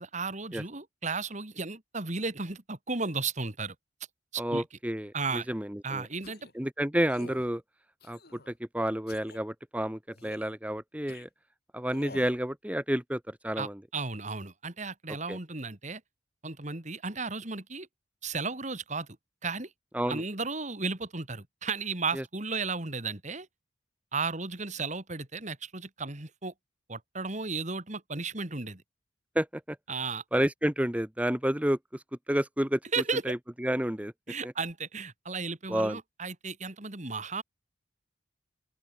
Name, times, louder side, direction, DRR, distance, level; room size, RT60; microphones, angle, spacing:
voice 1, 0.0-3.7 4.3-4.6 5.1-5.5 5.8-6.4 13.6-16.0 16.4-17.9 18.2-19.1 19.4-19.7 20.1-23.5 24.1-26.5 26.9-28.8 29.9-30.2 32.9-33.3 34.3-37.4, right 4 dB, 40° right, 2.5 m, -34 dB
voice 2, 4.4-6.1 6.5-7.6 8.0-11.3 11.7-13.8 15.3-15.4 19.9-20.2 22.1-22.2 29.3-29.8 30.3-32.8 33.2-34.1 34.4-34.5 35.7-36.0, equal, 5° right, 1.4 m, -30 dB
sound 1, 6.2-6.6 7.1-7.5 8.0-8.5 9.1-9.4 10.1-10.5 11.1-11.3 11.9-12.4, left 2 dB, 55° left, 4.3 m, -49 dB
open air
head